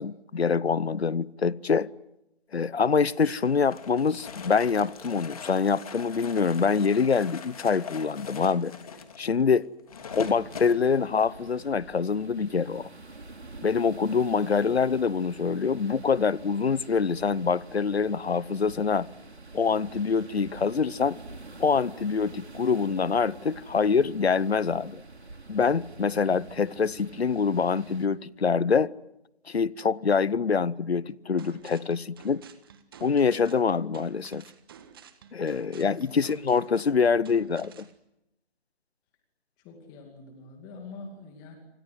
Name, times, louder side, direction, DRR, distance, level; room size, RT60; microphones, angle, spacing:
voice 1, 0.0-1.9 2.5-8.7 9.2-9.7 10.1-12.9 13.6-19.1 19.5-21.2 21.6-25.0 25.5-28.9 29.5-32.4 33.0-34.5 35.3-37.9, left 5 dB, 75° left, 0.9 m, -25 dB
sound 1, 3.2-10.8, left 6 dB, 35° left, 2.8 m, -42 dB
sound 2, 10.1-28.1, right 2 dB, 80° right, 3.7 m, -46 dB
sound 3, 31.4-37.9, right 7 dB, 20° right, 1.5 m, -51 dB
voice 2, 39.6-41.6, left 3 dB, 10° left, 2.5 m, -45 dB
29.0 x 24.5 x 7.9 m
figure-of-eight pair, 160°, 32 cm